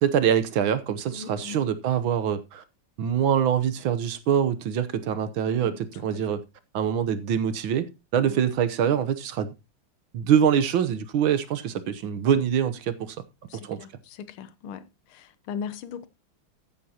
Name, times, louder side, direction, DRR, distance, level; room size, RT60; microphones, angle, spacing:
voice 1, 0.0-2.6 3.0-6.4 6.7-7.9 8.1-9.5 10.1-13.2 13.6-13.8, right 8 dB, 70° right, 1.6 m, -24 dB
voice 2, 1.1-1.6 5.5-5.7 13.5-13.9 14.2-14.8 15.1-16.1, left 7 dB, 75° left, 1.7 m, -38 dB
14.0 x 9.8 x 2.9 m
omnidirectional pair, 2.4 m